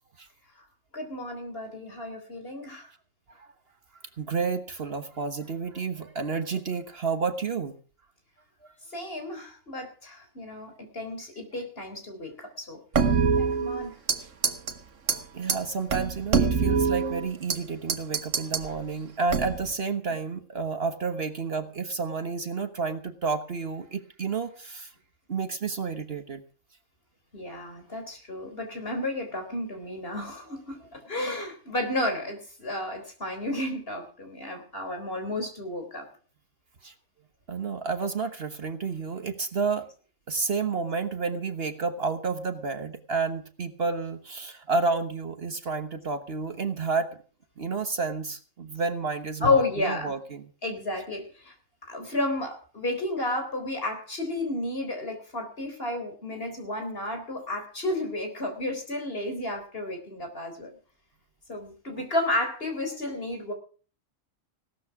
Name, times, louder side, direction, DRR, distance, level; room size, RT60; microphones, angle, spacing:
voice 1, 0.9-2.9 8.9-12.8 13.4-13.9 27.3-36.1 49.4-50.1 50.6-51.5 51.9-60.7 61.5-63.5, left 2 dB, 45° left, 5 dB, 4.1 m, -32 dB
voice 2, 4.2-7.8 15.1-24.9 25.3-26.4 36.8-36.9 37.5-39.9 40.3-47.1 47.6-50.5 61.9-62.1, right 4 dB, 50° right, 8 dB, 1.4 m, -30 dB
sound 1, 12.9-14.2 14.4-14.7 15.1-15.2 15.5-15.6 15.9-17.6 17.9-18.7 19.3-19.7, right 5 dB, 70° right, 1.7 m, -24 dB
17.0 x 13.0 x 4.8 m, 0.40 s
omnidirectional pair, 1.3 m